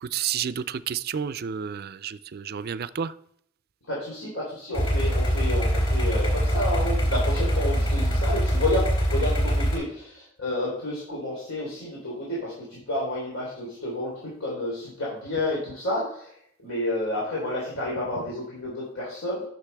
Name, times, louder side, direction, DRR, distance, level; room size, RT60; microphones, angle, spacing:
voice 1, 0.0-3.1, right 8 dB, 50° right, 15 dB, 0.4 m, -30 dB
voice 2, 3.9-16.3 16.6-19.4, left 1 dB, 85° left, -6 dB, 3.4 m, -30 dB
sound 1, 4.7-9.8, equal, 25° left, 3.6 m, -23 dB
9.8 x 6.6 x 3.4 m, 0.67 s
head